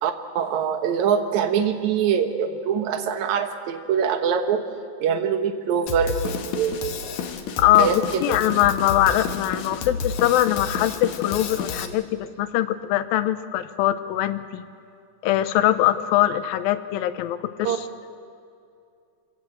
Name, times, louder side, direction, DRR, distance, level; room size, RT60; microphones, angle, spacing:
voice 1, 0.0-4.6 5.0-7.2 7.8-8.4 17.7-17.8, right 7 dB, 65° right, 7 dB, 2.4 m, -24 dB
Drum kit, 5.9-11.9, left 6 dB, 65° left, 2.2 m, -30 dB
voice 2, 7.6-14.6 15.2-17.8, left 13 dB, 85° left, 11 dB, 2.6 m, -22 dB
25.5 x 17.5 x 7.9 m, 2.4 s
omnidirectional pair, 4.1 m